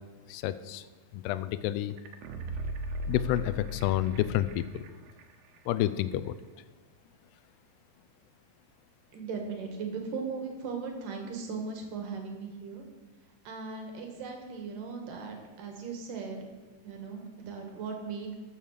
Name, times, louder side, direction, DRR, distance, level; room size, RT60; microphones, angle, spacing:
voice 1, 0.3-0.9 1.1-1.9 3.1-4.9 5.7-6.4, left 12 dB, 85° left, 13 dB, 2.5 m, -29 dB
sound 1, 2.0-4.9 5.2-5.3, left 1 dB, 75° right, 2.8 m, -37 dB
voice 2, 9.1-12.8 13.4-16.5 16.8-18.3, right 5 dB, 60° right, 3 dB, 2.9 m, -38 dB
13.0 x 7.1 x 6.5 m, 1.3 s
omnidirectional pair, 4.8 m